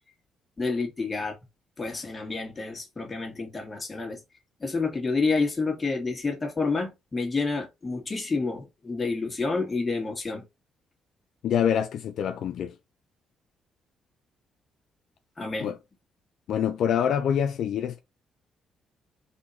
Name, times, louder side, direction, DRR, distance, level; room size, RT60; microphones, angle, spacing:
voice 1, 0.6-1.3 1.8-4.2 4.6-10.4 15.4-15.7, left 3 dB, 25° left, 1.9 m, -29 dB
voice 2, 11.4-12.7 15.6-15.8 16.5-18.0, left 8 dB, 70° left, 0.5 m, -25 dB
4.2 x 2.8 x 4.1 m
cardioid pair, 90°, 0 cm